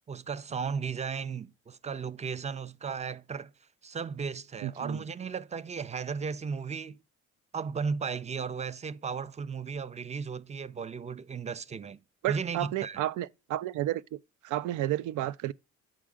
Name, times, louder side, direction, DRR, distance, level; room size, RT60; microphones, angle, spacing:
voice 1, 0.1-3.5 3.8-7.0 7.5-12.0 12.3-13.0, right 5 dB, 25° right, 0.4 m, -35 dB
voice 2, 4.6-5.0 12.2-14.0 14.4-15.5, right 14 dB, 85° right, 0.5 m, -31 dB
7.4 x 4.8 x 3.6 m
cardioid pair, 90°, 30 cm